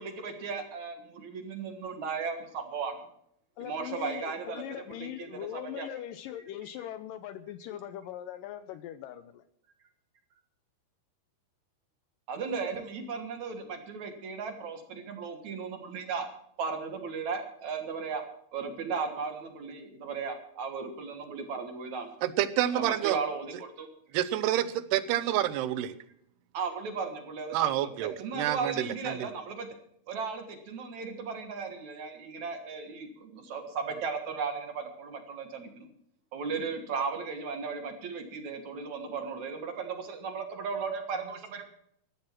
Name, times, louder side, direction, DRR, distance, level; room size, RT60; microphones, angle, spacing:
voice 1, 0.0-3.0 3.6-4.6 5.0-5.9 12.3-16.3 16.6-18.2 18.5-22.1 22.7-23.9 26.5-27.7 28.2-29.7 30.1-35.9 36.3-41.6, right 5 dB, 55° right, 6 dB, 2.5 m, -36 dB
voice 2, 3.6-9.4, left 11 dB, 80° left, 12 dB, 2.0 m, -40 dB
voice 3, 22.2-23.2 24.1-25.9 27.5-29.3, right 12 dB, 85° right, 14 dB, 2.9 m, -28 dB
14.5 x 12.0 x 6.0 m, 0.71 s
omnidirectional pair, 4.6 m